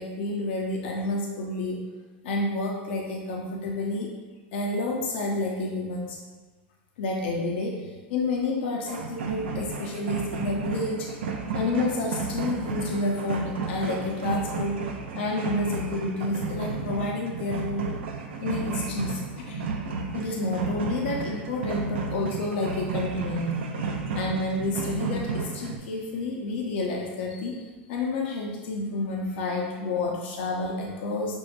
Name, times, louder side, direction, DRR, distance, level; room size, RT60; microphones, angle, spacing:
voice 1, 0.0-1.8 2.2-4.1 4.5-6.2 7.0-11.1 11.5-14.8 15.1-18.0 18.4-19.6 20.1-23.6 24.1-31.4, left 2 dB, 75° left, -1 dB, 0.6 m, -29 dB
sound 1, 8.9-25.8, right 4 dB, 90° right, 0.5 m, -33 dB
6.1 x 2.1 x 2.5 m, 1.3 s
supercardioid pair, 125°, 6 cm